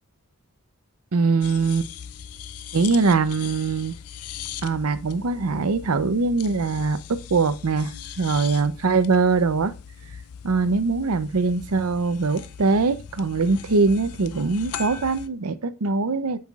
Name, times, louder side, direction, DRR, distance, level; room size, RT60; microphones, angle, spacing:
voice 1, 1.1-1.9 2.7-3.9 4.6-7.9 8.2-9.7 10.4-16.4, right 4 dB, 75° right, 0.6 m, -22 dB
sound 1, 1.4-15.3, left 8 dB, 75° left, 0.6 m, -39 dB
8.6 x 5.6 x 2.4 m
head